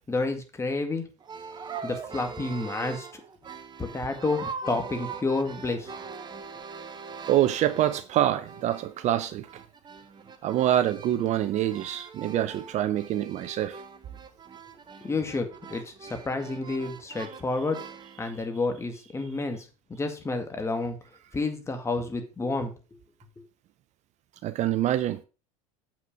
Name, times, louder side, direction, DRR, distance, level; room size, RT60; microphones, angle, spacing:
voice 1, 0.1-1.0 1.8-3.2 3.8-5.9 15.0-17.8 18.2-21.0 21.3-22.7, left 3 dB, 15° left, 2.0 m, -30 dB
sound 1, 1.2-8.2 8.4-18.2, right 5 dB, 25° right, 1.1 m, -42 dB
voice 2, 7.3-9.5 10.4-13.8 18.2-18.3 24.4-25.2, right 12 dB, 40° right, 0.6 m, -26 dB
7.7 x 6.0 x 5.2 m
hypercardioid pair, 105°, 18 cm